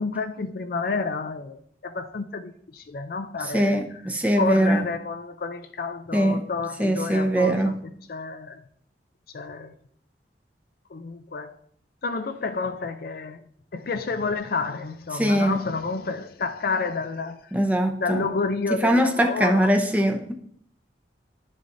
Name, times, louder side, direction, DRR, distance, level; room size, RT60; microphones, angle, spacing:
voice 1, 0.0-4.0 4.3-8.7 9.3-9.8 10.9-11.6 12.0-13.5 13.7-17.5 18.0-19.7, left 4 dB, 55° left, 0.5 m, -30 dB
voice 2, 3.5-4.8 6.1-6.4 6.8-7.7 15.1-15.6 17.5-18.3 18.8-20.3, right 1 dB, 10° right, 0.8 m, -21 dB
11.0 x 6.3 x 2.7 m
head